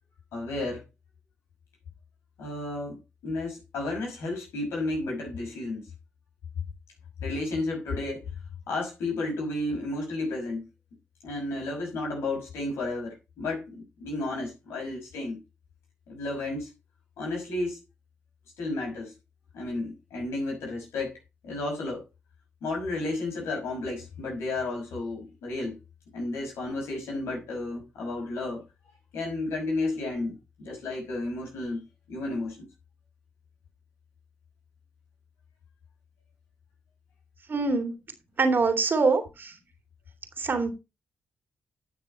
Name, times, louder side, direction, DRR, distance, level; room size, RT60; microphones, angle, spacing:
voice 1, 0.3-0.8 2.4-3.0 3.2-5.8 7.2-8.2 8.7-10.6 11.2-15.4 16.1-16.7 17.2-17.8 18.6-19.1 19.5-21.1 21.4-22.0 22.6-25.8 26.1-28.6 29.1-31.8 32.1-32.7, left 2 dB, 80° left, 5.7 m, -32 dB
voice 2, 37.5-37.9 38.4-39.5 40.4-40.7, right 4 dB, 50° right, 2.8 m, -24 dB
11.0 x 6.3 x 4.4 m
supercardioid pair, 45°, 4 cm